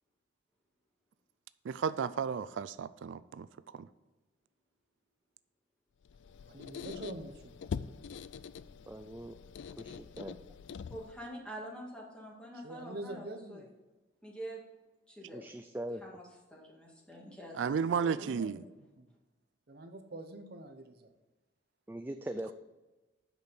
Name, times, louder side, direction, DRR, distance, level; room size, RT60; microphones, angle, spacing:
voice 1, 1.6-3.5 3.7-3.9 17.5-18.6, right 6 dB, 90° right, 15 dB, 0.4 m, -33 dB
Squeak, 6.0-11.3, left 6 dB, 75° left, 0.3 m, -44 dB
voice 2, 6.5-7.6 12.5-13.7 18.0-18.6 19.0-19.1 19.7-21.1, right 1 dB, 55° right, 7 dB, 0.8 m, -45 dB
voice 3, 8.9-9.4 9.8-10.4 15.3-16.0 21.9-22.5, right 1 dB, 10° right, 7 dB, 0.3 m, -41 dB
voice 4, 10.9-13.2 13.5-13.7 14.2-14.6 15.1-15.5 16.0-17.6 17.9-18.3, equal, 5° left, -3 dB, 1.9 m, -46 dB
8.2 x 6.1 x 5.1 m, 1.1 s
head